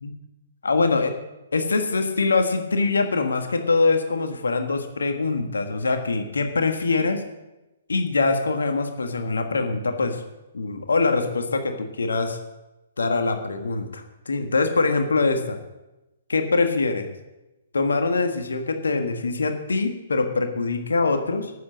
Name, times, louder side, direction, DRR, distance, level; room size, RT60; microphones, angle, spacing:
voice 1, 0.6-1.1 1.5-7.2 7.9-10.2 10.5-12.4 13.0-15.6 16.3-17.1 17.7-21.5, left 3 dB, 70° left, 5 dB, 1.7 m, -23 dB
13.0 x 8.4 x 7.4 m, 1.0 s
figure-of-eight pair, 125°, 0 cm